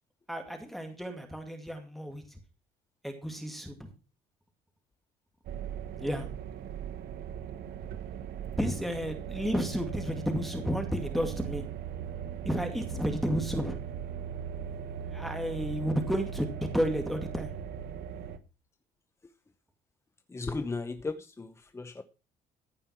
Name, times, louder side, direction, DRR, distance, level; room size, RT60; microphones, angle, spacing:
voice 1, 0.3-2.2 3.0-3.9 6.0-6.3 8.6-11.7 12.4-13.8 15.1-16.5 16.7-17.5, equal, ahead, 2.2 m, -32 dB
sound 1, 5.5-18.4, right 8 dB, 70° right, 1.3 m, -39 dB
voice 2, 20.3-22.0, left 3 dB, 15° left, 0.8 m, -36 dB
14.5 x 5.5 x 5.8 m
cardioid pair, 110°, 17 cm